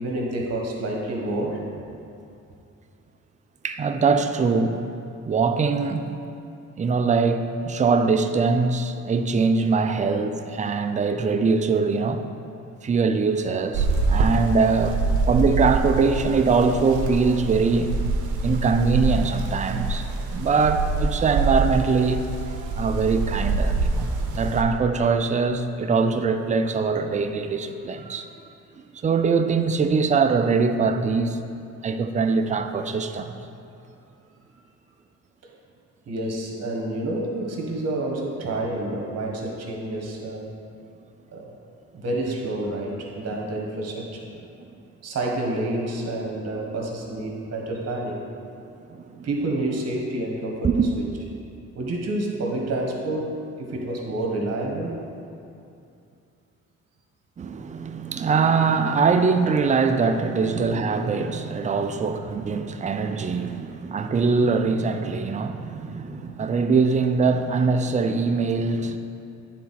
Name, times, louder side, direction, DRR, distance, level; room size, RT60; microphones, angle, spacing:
voice 1, 0.0-1.6 31.7-31.8 36.1-40.5 41.3-41.5 41.9-44.3 45.0-48.2 49.2-51.1 51.7-53.3 53.6-55.0 60.5-60.7, right 1 dB, 55° right, -1 dB, 1.4 m, -28 dB
voice 2, 3.6-4.8 5.2-6.1 6.8-12.2 12.8-15.0 15.3-17.9 18.4-28.3 29.0-31.4 31.8-33.3 48.9-49.3 50.6-50.9 57.4-69.0, right 4 dB, 25° right, 7 dB, 0.4 m, -22 dB
sound 1, 13.7-24.6, right 3 dB, 80° right, 0.7 m, -25 dB
9.3 x 4.2 x 4.2 m, 2.6 s
cardioid pair, 90°, 30 cm